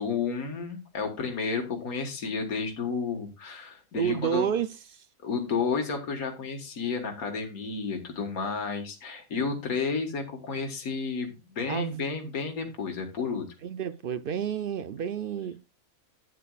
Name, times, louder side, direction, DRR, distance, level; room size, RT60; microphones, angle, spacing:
voice 1, 0.0-4.5 5.2-13.5, left 5 dB, 85° left, 2.0 m, -31 dB
voice 2, 3.9-5.1 11.7-12.1 13.6-15.6, right 8 dB, 70° right, 0.5 m, -30 dB
11.0 x 8.9 x 2.4 m
omnidirectional pair, 1.5 m